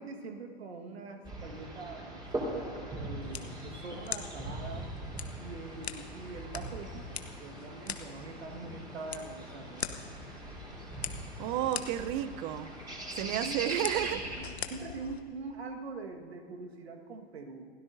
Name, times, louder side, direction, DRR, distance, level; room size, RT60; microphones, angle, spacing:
voice 1, 0.0-2.2 2.9-4.9 5.4-9.8 13.3-17.7, right 3 dB, 70° right, 3 dB, 1.7 m, -43 dB
sound 1, 1.2-14.4, right 1 dB, 15° right, 4.4 m, -41 dB
sound 2, 3.2-15.2, left 7 dB, 80° left, 1.0 m, -44 dB
voice 2, 11.4-12.7 13.1-14.2, right 12 dB, 45° right, 13 dB, 0.8 m, -32 dB
28.0 x 16.5 x 2.7 m, 2.1 s
figure-of-eight pair, 90°, 32 cm